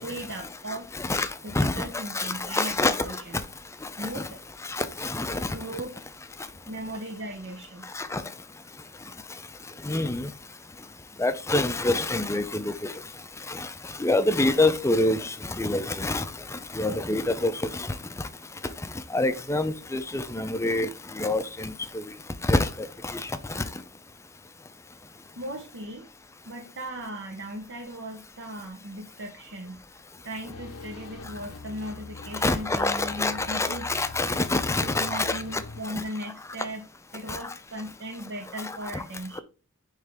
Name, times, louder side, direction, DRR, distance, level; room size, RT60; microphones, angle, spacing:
voice 1, 0.0-0.9 1.4-3.5 4.0-4.4 5.5-5.9 6.7-7.9 25.4-26.1 26.4-29.8 30.2-33.9 34.8-36.9 37.1-39.4, right 1 dB, 55° right, 0.9 m, -37 dB
voice 2, 0.7-1.3 1.5-3.1 4.0-4.2 4.7-5.6 7.9-8.2 9.8-10.3 11.2-12.9 13.5-13.7 14.0-16.2 16.5-17.9 19.1-20.9 21.1-22.0 22.4-22.7 23.0-23.2 23.5-23.6 32.4-35.6 35.9-36.0 37.3-37.4 38.9-39.0, left 2 dB, 15° left, 0.5 m, -26 dB
sound 1, 30.5-35.8, left 3 dB, 80° left, 0.7 m, -42 dB
9.7 x 3.3 x 3.5 m
head